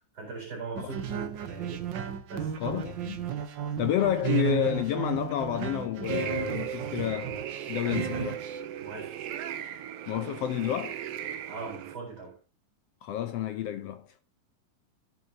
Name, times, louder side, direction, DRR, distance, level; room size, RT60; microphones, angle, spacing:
voice 1, 0.1-1.9 2.3-2.5 7.8-8.3 8.8-9.2 11.5-12.4, right 4 dB, 30° right, 4.6 m, -40 dB
sound 1, 0.7-8.6, right 9 dB, 90° right, 1.0 m, -34 dB
voice 2, 2.6-3.2 3.8-7.4 7.7-8.3 10.1-11.0 13.0-14.1, left 11 dB, 75° left, 1.5 m, -30 dB
sound 2, 6.0-12.0, right 9 dB, 70° right, 1.5 m, -38 dB
17.0 x 8.2 x 2.8 m
omnidirectional pair, 3.4 m